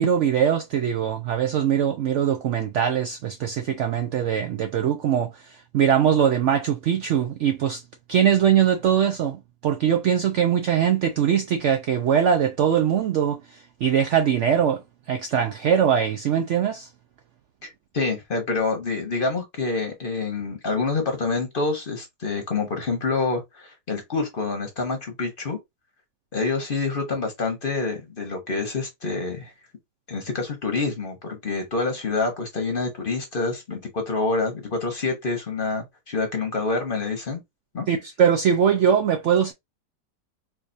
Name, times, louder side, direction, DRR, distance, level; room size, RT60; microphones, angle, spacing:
voice 1, 0.0-7.8 8.1-14.8 15.1-16.9 37.9-39.5, right 8 dB, 90° right, 0.6 m, -22 dB
voice 2, 17.6-25.6 26.3-29.5 30.1-37.4 37.7-37.9, left 3 dB, 40° left, 0.9 m, -27 dB
4.7 x 2.4 x 2.5 m
omnidirectional pair, 1.8 m